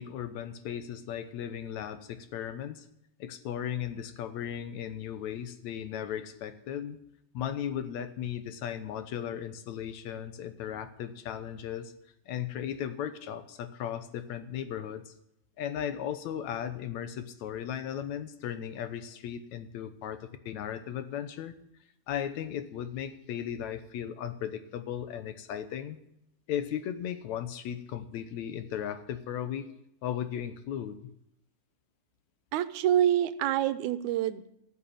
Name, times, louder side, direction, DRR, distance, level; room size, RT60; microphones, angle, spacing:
voice 1, 0.0-2.9 3.2-7.0 7.3-11.9 12.3-15.1 15.6-21.5 22.1-26.0 26.5-29.7 30.0-31.1, left 9 dB, 75° left, 10 dB, 2.2 m, -36 dB
voice 2, 32.5-34.5, right 11 dB, 90° right, 14 dB, 2.2 m, -26 dB
14.0 x 7.1 x 9.3 m, 0.78 s
omnidirectional pair, 3.4 m